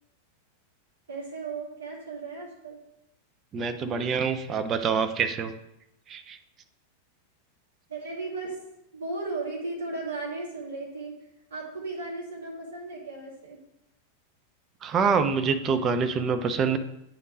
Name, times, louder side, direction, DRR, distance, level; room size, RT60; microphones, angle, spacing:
voice 1, 1.1-2.8 7.9-8.6 8.9-11.1 11.5-13.6, right 3 dB, 60° right, -4 dB, 2.4 m, -35 dB
voice 2, 3.5-5.5 6.1-6.4 14.8-16.8, right 5 dB, 30° right, 9 dB, 0.5 m, -26 dB
9.1 x 3.6 x 3.8 m, 0.81 s
figure-of-eight pair, 90°, 0 cm